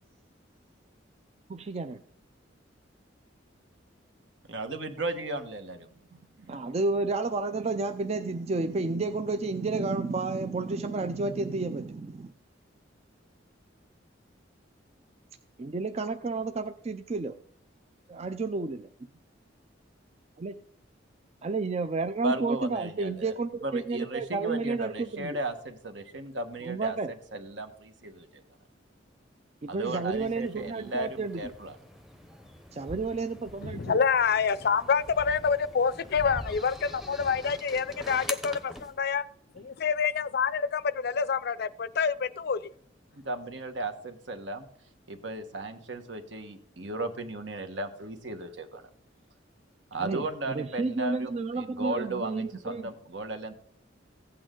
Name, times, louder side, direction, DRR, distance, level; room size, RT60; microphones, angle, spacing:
voice 1, 1.5-2.0 6.1-12.3 15.6-17.4 18.1-18.9 20.4-20.6 21.4-25.4 26.6-27.1 29.6-31.5 32.7-34.0 50.0-52.9, right 3 dB, 35° right, 0.4 m, -31 dB
voice 2, 4.5-5.9 22.2-23.3 23.6-27.0 27.3-28.4 29.7-31.7 43.1-44.6 45.1-48.8 49.9-53.6, right 2 dB, 70° right, 1.4 m, -35 dB
sound 1, 30.1-39.0, left 1 dB, ahead, 0.8 m, -44 dB
voice 3, 33.6-39.2 39.6-42.7, left 6 dB, 55° left, 0.5 m, -27 dB
15.5 x 8.7 x 3.8 m
head